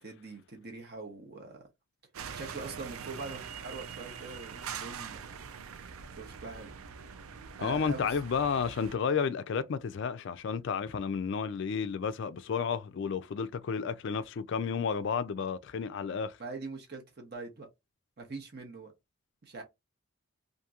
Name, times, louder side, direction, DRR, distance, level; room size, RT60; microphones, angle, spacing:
voice 1, 0.0-1.6 2.3-5.4 6.1-6.7 7.6-8.2 16.4-17.7 18.2-18.9 19.4-19.6, right 3 dB, 45° right, 0.7 m, -43 dB
sound 1, 2.1-9.0, right 6 dB, 75° right, 0.4 m, -43 dB
voice 2, 7.6-16.4, left 6 dB, 55° left, 0.3 m, -32 dB
2.8 x 2.5 x 2.3 m
head